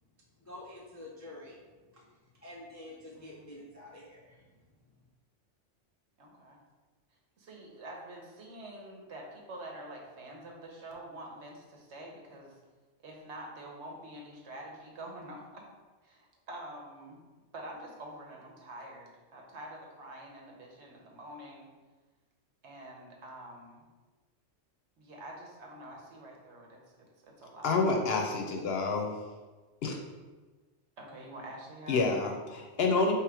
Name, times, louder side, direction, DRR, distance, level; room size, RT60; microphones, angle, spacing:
voice 1, 0.4-1.6 1.9-2.1 2.4-4.6, left 1 dB, 25° left, -4 dB, 0.4 m, -48 dB
voice 2, 3.1-3.5 6.2-6.6 7.4-12.6 13.0-15.6 16.0-17.2 17.5-21.7 22.6-23.9 25.0-27.7 31.0-32.0, right 1 dB, 70° right, 0 dB, 1.1 m, -46 dB
voice 3, 27.6-29.2 29.8-30.0 31.9-33.1, left 3 dB, 65° left, 2 dB, 0.7 m, -28 dB
3.5 x 3.0 x 4.7 m, 1.3 s
omnidirectional pair, 1.2 m